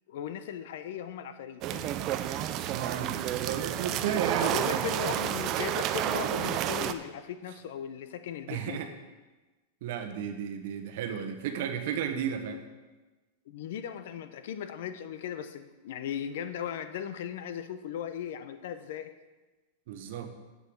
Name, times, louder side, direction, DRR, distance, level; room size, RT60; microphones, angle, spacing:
voice 1, 0.1-1.9 2.3-2.4 4.4-8.8 13.5-19.1, left 9 dB, 55° left, 11 dB, 0.7 m, -37 dB
sound 1, 1.6-6.9, right 11 dB, 25° right, 0.4 m, -30 dB
voice 2, 2.6-4.8 8.5-8.9 9.8-12.6 19.9-20.3, right 8 dB, 50° right, 7 dB, 1.1 m, -33 dB
7.6 x 6.7 x 7.8 m, 1.2 s
supercardioid pair, 175°, 0 cm